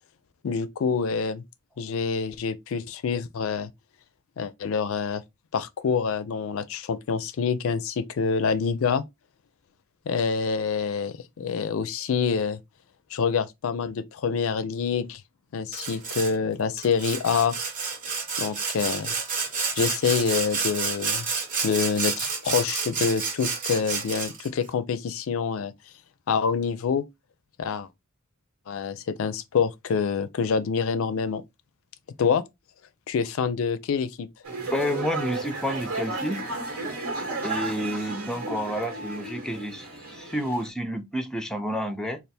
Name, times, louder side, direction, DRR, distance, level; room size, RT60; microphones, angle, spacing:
voice 1, 0.4-1.4 1.8-3.7 4.4-5.2 5.5-9.0 10.1-12.6 13.1-15.2 15.5-17.5 18.4-19.2 19.8-21.3 21.6-25.7 26.3-27.0 27.6-27.9 28.7-31.4 32.2-32.4 33.1-34.3, left 6 dB, 65° left, 0.4 m, -26 dB
Sawing, 15.7-16.3 16.8-24.5, right 5 dB, 40° right, 0.9 m, -30 dB
sound 1, 34.4-40.7, right 3 dB, 75° right, 1.4 m, -33 dB
voice 2, 34.7-36.4 37.4-42.2, equal, 5° left, 0.5 m, -30 dB
3.3 x 2.4 x 4.1 m
head